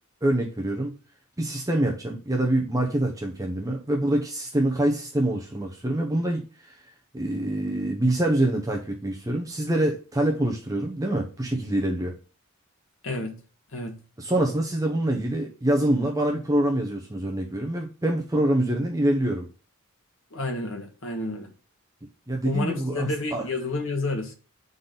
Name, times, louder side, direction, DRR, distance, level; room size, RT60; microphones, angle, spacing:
voice 1, 0.2-0.9 1.4-12.2 14.2-19.5 22.3-23.5, right 1 dB, 15° right, 1 dB, 0.7 m, -25 dB
voice 2, 13.0-13.4 13.7-13.9 20.3-21.5 22.4-24.3, left 2 dB, 60° left, 3 dB, 1.5 m, -30 dB
8.4 x 4.0 x 3.9 m, 0.36 s
head